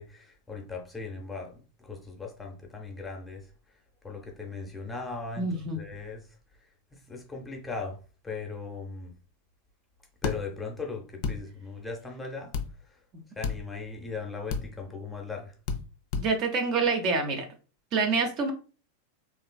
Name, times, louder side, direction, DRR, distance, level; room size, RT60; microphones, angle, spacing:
voice 1, 0.0-3.5 4.0-6.3 6.9-9.1 10.2-12.5 12.8-13.0 13.4-15.5, left 4 dB, 10° left, 0.6 m, -38 dB
voice 2, 5.4-5.8 13.1-13.2 16.2-17.5 17.9-18.5, right 4 dB, 35° right, 0.5 m, -27 dB
sound 1, 10.2-10.4 11.2-11.4 12.5-12.7 13.4-13.6 14.5-14.7 15.7-15.8 16.1-16.3, left 5 dB, 50° left, 0.3 m, -29 dB
3.1 x 2.4 x 2.2 m
figure-of-eight pair, 90°, 0 cm